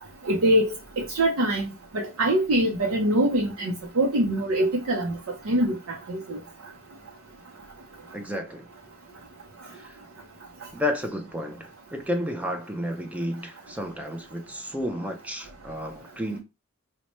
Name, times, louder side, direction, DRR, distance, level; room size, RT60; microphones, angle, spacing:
voice 1, 0.3-0.7 1.0-1.6 1.9-5.1 5.5-5.7 6.1-6.4, right 1 dB, 80° right, 0.6 m, -23 dB
voice 2, 8.1-8.7 9.7-10.0 10.7-16.4, left 1 dB, 5° right, 0.4 m, -32 dB
4.1 x 2.1 x 3.0 m
head